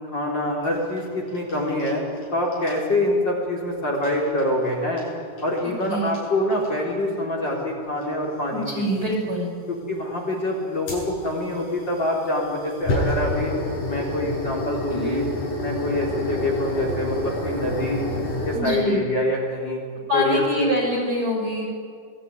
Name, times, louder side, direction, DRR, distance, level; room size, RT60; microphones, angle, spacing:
voice 1, 0.1-2.0 2.3-5.0 5.4-8.8 9.7-13.5 13.9-15.3 15.6-18.1 18.5-19.8 20.1-20.6, left 1 dB, 35° left, -1 dB, 4.4 m, -25 dB
sound 1, 0.6-2.3 2.5-2.8 3.9-4.4 5.0-5.1 5.4-5.9 6.1-6.2 6.5-6.9 8.0-8.1 8.9-9.0 10.9-18.6, left 1 dB, 85° left, 9.8 m, -29 dB
voice 2, 5.6-6.1 8.5-9.5 14.9-15.2 18.5-19.0 20.1-21.7, equal, 30° right, 0 dB, 8.1 m, -25 dB
28.0 x 20.5 x 9.7 m, 2.2 s
omnidirectional pair, 3.7 m